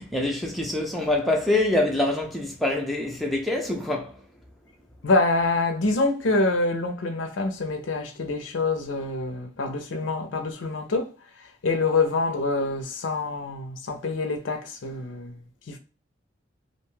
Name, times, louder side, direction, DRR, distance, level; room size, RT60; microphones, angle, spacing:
voice 1, 0.0-4.2, left 2 dB, ahead, 0.3 m, -25 dB
voice 2, 5.0-15.4 15.7-15.8, left 3 dB, 85° left, 0.5 m, -26 dB
2.5 x 2.2 x 3.0 m
head